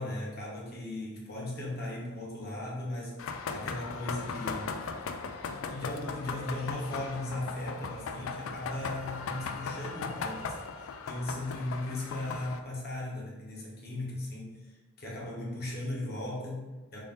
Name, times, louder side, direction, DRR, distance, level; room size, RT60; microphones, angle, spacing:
voice 1, 0.0-3.2 3.5-4.8 5.4-14.6 15.0-17.0, left 1 dB, 50° left, -3 dB, 0.9 m, -37 dB
sound 1, 3.2-12.6, left 5 dB, 75° left, 0.3 m, -38 dB
3.6 x 2.5 x 3.6 m, 1.2 s
head